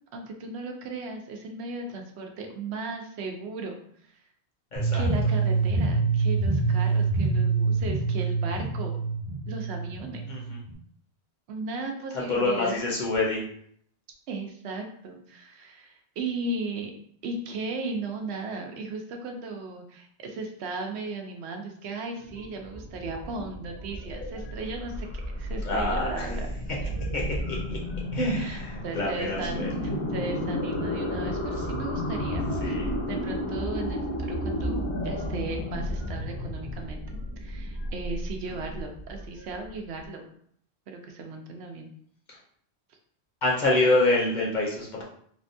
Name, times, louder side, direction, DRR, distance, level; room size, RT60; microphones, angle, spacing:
voice 1, 0.1-3.8 4.9-9.0 9.5-10.2 11.5-12.8 14.3-16.9 17.2-25.1 25.3-26.6 28.4-32.7 33.1-40.2 40.9-41.9, right 3 dB, 80° right, 3 dB, 0.8 m, -36 dB
voice 2, 4.7-5.1 10.3-10.6 12.3-13.4 25.6-26.3 27.1-27.2 27.7-27.8 28.1-29.7 32.6-32.9 43.4-45.0, left 2 dB, 50° left, -4 dB, 0.8 m, -26 dB
sound 1, 4.8-10.7, right 4 dB, 35° right, 0.8 m, -26 dB
sound 2, 22.2-40.0, equal, 75° left, 1.1 m, -32 dB
3.4 x 2.2 x 2.6 m, 0.65 s
omnidirectional pair, 1.1 m